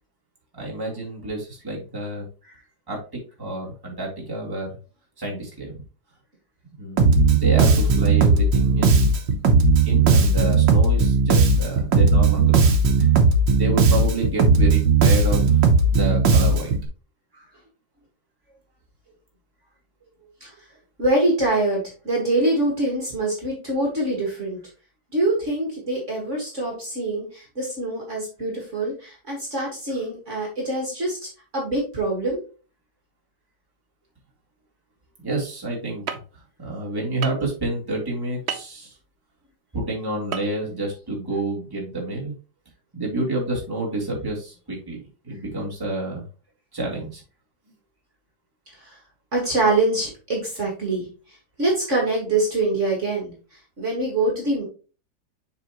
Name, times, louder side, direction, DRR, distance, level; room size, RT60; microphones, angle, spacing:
voice 1, 0.5-2.3 2.9-4.7 5.2-5.8 6.8-9.0 9.8-12.7 13.0-13.1 13.5-15.6 15.9-16.7 35.2-36.2 36.6-39.0 39.7-42.3 42.9-45.0 45.2-46.2 46.7-47.2, right 2 dB, 10° right, -3 dB, 2.3 m, -29 dB
Bass guitar, 7.0-16.9, right 4 dB, 90° right, 1.7 m, -17 dB
voice 2, 21.0-24.6 25.1-32.4 48.8-49.0 49.3-54.6, right 2 dB, 40° right, -1 dB, 2.1 m, -24 dB
sound 1, 36.1-36.2 37.2-37.5 38.5-38.7 40.3-40.5 40.8-40.9, right 7 dB, 60° right, 0.7 m, -29 dB
7.2 x 4.9 x 3.0 m, 0.35 s
omnidirectional pair, 1.9 m